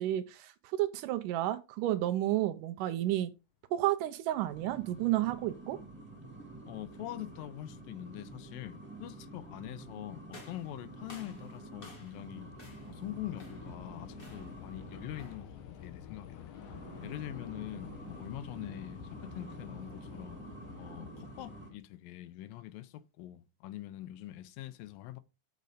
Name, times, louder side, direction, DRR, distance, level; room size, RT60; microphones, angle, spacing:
voice 1, 0.0-3.3 3.7-5.8, right 14 dB, 80° right, 2.1 m, -31 dB
sound 1, 4.3-15.5 16.5-21.7, right 2 dB, 5° right, 1.1 m, -49 dB
voice 2, 6.7-12.5 12.9-15.5 15.8-16.6 17.0-20.4 20.8-25.2, left 14 dB, 85° left, 2.4 m, -44 dB
Train / Subway metro underground, 9.4-21.8, left 8 dB, 65° left, 2.5 m, -50 dB
sound 2, 10.3-12.3 12.6-13.0 13.4-13.8 14.2-14.6 15.1-15.5, left 3 dB, 45° left, 0.7 m, -54 dB
6.8 x 5.1 x 4.9 m
omnidirectional pair, 4.0 m